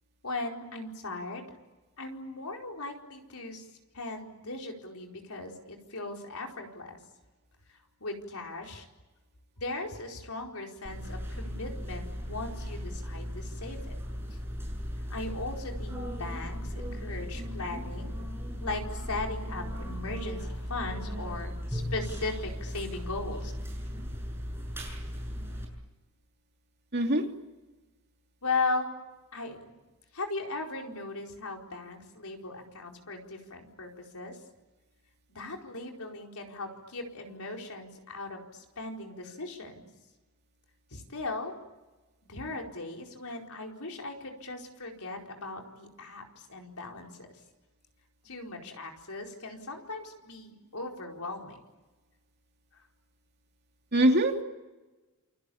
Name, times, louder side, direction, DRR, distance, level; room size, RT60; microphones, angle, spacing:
voice 1, 0.2-1.5 2.0-3.7 3.9-7.0 7.7-8.8 9.6-13.9 15.1-18.1 18.6-23.5 28.4-28.9 29.3-29.7 30.1-34.4 35.3-39.9 40.9-41.5 42.2-47.3 48.2-51.6 52.7-52.8, left 3 dB, 80° left, 2 dB, 4.6 m, -38 dB
sound 1, 10.8-25.6, equal, 10° right, 7.1 m, -37 dB
voice 2, 26.9-27.2 53.9-54.4, right 1 dB, 50° right, 3 dB, 2.9 m, -23 dB
28.5 x 24.0 x 8.7 m, 1.2 s
head